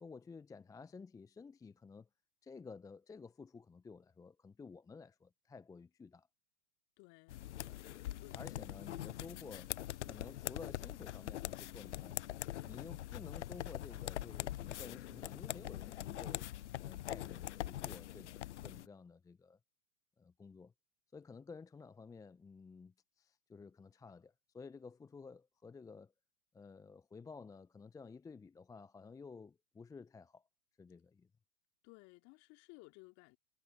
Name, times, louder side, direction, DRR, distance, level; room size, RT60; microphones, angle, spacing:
voice 1, 0.0-2.1 2.4-6.3 7.7-7.8 8.3-9.7 10.0-12.2 12.6-16.5 16.8-19.6 20.2-20.7 21.1-26.1 26.5-30.4 30.8-31.3, left 4 dB, 10° left, 0.8 m, -53 dB
voice 2, 7.0-7.5 8.2-8.5 31.8-33.4, left 26 dB, 40° left, 2.8 m, -58 dB
sound 1, 7.3-18.9, left 13 dB, 60° left, 0.9 m, -43 dB
figure-of-eight pair, 100°, 39 cm